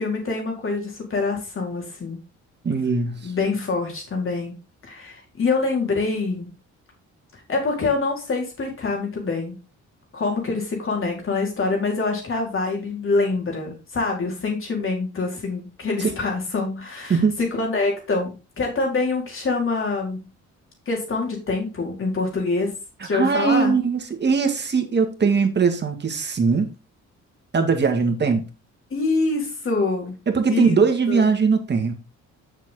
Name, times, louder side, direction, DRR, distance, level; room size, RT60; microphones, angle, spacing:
voice 1, 0.0-2.2 3.2-4.5 4.8-6.5 7.5-9.6 10.1-20.2 20.9-22.7 23.0-23.7 28.9-30.2 30.5-30.8 31.1-31.3, left 3 dB, 45° left, 4.3 m, -25 dB
voice 2, 2.6-3.3 16.0-16.1 17.1-17.4 23.0-26.7 27.5-28.4 30.3-31.9, right 5 dB, 35° right, 1.9 m, -20 dB
7.3 x 6.6 x 3.8 m
cardioid pair, 90°, 30 cm